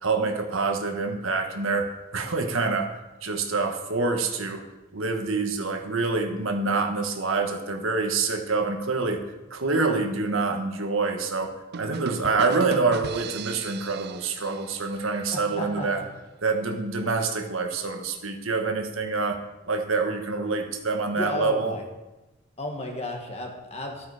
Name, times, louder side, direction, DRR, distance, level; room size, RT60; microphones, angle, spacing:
voice 1, 0.0-2.9 3.2-4.6 4.9-9.2 9.5-16.0 16.4-19.4 19.7-21.7, right 3 dB, 70° right, 5 dB, 1.4 m, -26 dB
sound 1, 11.7-15.5, right 6 dB, 50° right, 0.4 m, -38 dB
voice 2, 15.3-16.1 21.2-21.8 22.6-24.1, left 1 dB, 30° left, 2 dB, 1.8 m, -33 dB
13.5 x 8.8 x 4.9 m, 1.1 s
head